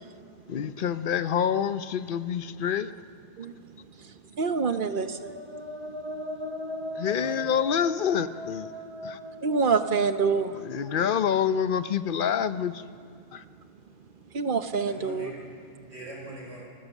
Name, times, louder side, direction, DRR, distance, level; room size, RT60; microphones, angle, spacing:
voice 1, 0.5-2.9 7.0-8.7 9.0-9.2 10.5-12.9 13.3-13.4, left 8 dB, 55° left, 13 dB, 0.7 m, -27 dB
voice 2, 4.4-5.3 9.4-10.6 14.3-15.3, right 5 dB, 50° right, 10 dB, 0.9 m, -26 dB
sound 1, 4.8-10.6, left 1 dB, 25° right, 1.1 m, -39 dB
voice 3, 7.0-7.5 14.8-16.6, right 1 dB, 80° right, -1 dB, 5.1 m, -43 dB
30.0 x 14.5 x 7.2 m, 2.4 s
omnidirectional pair, 1.2 m